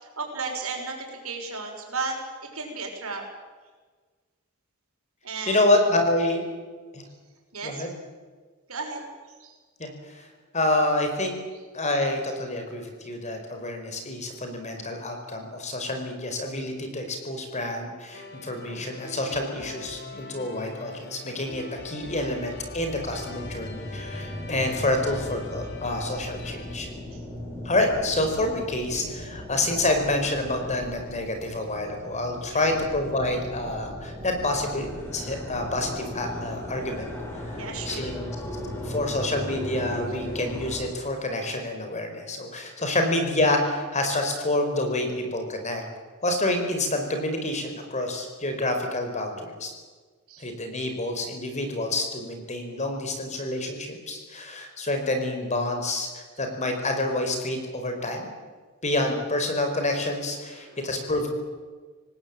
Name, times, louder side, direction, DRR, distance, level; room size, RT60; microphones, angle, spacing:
voice 1, 0.0-2.1 2.5-3.2 5.2-5.6 7.5-7.8 8.7-9.0 9.4-9.6 27.1-27.2 32.5-32.7 37.6-38.2 42.9-43.0 50.3-50.5 60.6-60.8, right 4 dB, 85° right, 2 dB, 6.4 m, -34 dB
voice 2, 5.5-6.4 6.9-7.0 7.6-7.9 9.8-10.3 10.5-11.3 11.7-26.9 27.6-38.3 38.8-45.8 46.2-49.7 50.4-58.3 58.8-61.3, left 2 dB, 35° left, 5 dB, 4.9 m, -28 dB
Memorable Journey Loop, 18.1-26.8, left 2 dB, 55° left, 3.9 m, -43 dB
sound 1, 21.9-40.9, left 1 dB, 10° left, 5.9 m, -37 dB
26.5 x 18.5 x 8.9 m, 1.4 s
head